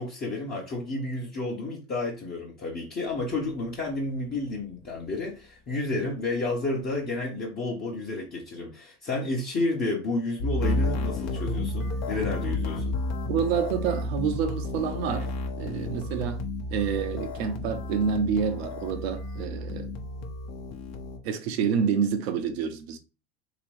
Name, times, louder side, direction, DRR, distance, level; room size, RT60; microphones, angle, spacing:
voice 1, 0.0-13.0, left 2 dB, 30° left, 1.0 m, -31 dB
sound 1, 10.4-21.2, left 2 dB, 50° left, 0.9 m, -31 dB
voice 2, 13.3-16.4 16.7-19.9 21.2-23.0, right 7 dB, 65° right, 0.8 m, -28 dB
3.3 x 2.9 x 3.1 m
hypercardioid pair, 90°, 33 cm